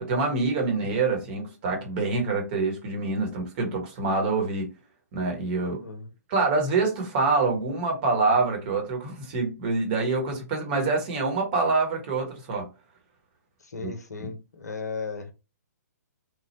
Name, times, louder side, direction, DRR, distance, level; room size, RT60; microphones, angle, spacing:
voice 1, 0.0-4.7 5.1-5.8 6.3-12.7 13.8-13.9, right 3 dB, 35° right, 1.0 m, -26 dB
voice 2, 5.6-6.1 13.6-15.3, left 4 dB, 65° left, 0.7 m, -36 dB
3.2 x 2.1 x 2.8 m
figure-of-eight pair, 125°, 9 cm